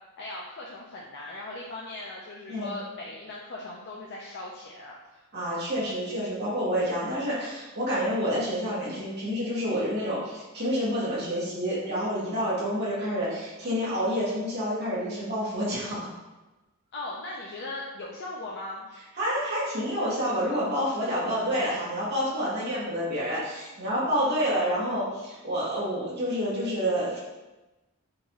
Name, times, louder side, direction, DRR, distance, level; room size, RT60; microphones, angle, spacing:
voice 1, 0.2-5.0 16.9-18.9 21.3-21.8 24.2-24.6, left 2 dB, 50° left, -3 dB, 0.4 m, -39 dB
voice 2, 5.3-16.1 19.2-27.2, equal, 45° right, -8 dB, 1.1 m, -28 dB
3.9 x 2.5 x 3.0 m, 1.1 s
head